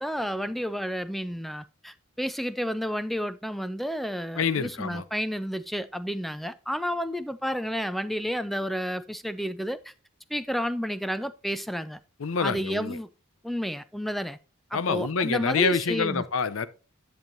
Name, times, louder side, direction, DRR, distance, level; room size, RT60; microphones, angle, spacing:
voice 1, 0.0-9.9 10.3-12.0 12.4-13.1 13.4-14.4 14.7-16.2, equal, ahead, 0.3 m, -31 dB
voice 2, 4.4-5.0 12.2-13.0 14.7-16.7, left 5 dB, 65° left, 0.6 m, -27 dB
10.5 x 7.0 x 2.7 m
head